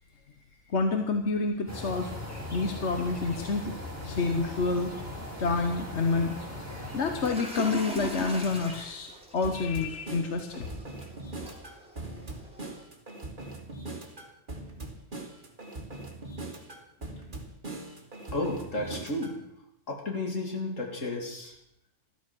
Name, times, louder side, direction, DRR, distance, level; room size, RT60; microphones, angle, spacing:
voice 1, 0.7-2.1 2.5-4.9 5.4-6.3 6.9-10.7, left 4 dB, 65° left, 6 dB, 1.4 m, -28 dB
sound 1, 1.7-7.3, left 1 dB, 10° left, 3.8 m, -39 dB
sound 2, 7.2-12.8, right 1 dB, 5° right, 2.9 m, -40 dB
sound 3, 9.4-19.4, right 2 dB, 40° right, 2.4 m, -41 dB
voice 2, 18.3-19.4 19.9-21.6, left 2 dB, 85° left, 1 dB, 3.1 m, -32 dB
13.5 x 13.5 x 6.2 m, 0.78 s
omnidirectional pair, 1.3 m